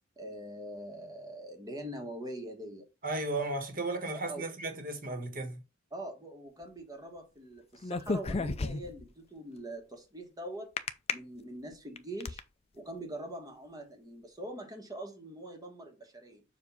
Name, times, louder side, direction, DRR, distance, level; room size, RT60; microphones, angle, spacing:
voice 1, 0.2-2.9 4.1-4.4 5.9-10.7 11.1-12.4 12.7-16.4, right 1 dB, 20° right, 1.3 m, -43 dB
voice 2, 3.0-5.6, right 2 dB, 45° right, 1.4 m, -35 dB
sound 1, 7.8-9.1 10.8-11.1 11.7-12.4, left 3 dB, 30° left, 0.4 m, -32 dB
7.0 x 2.7 x 5.5 m
head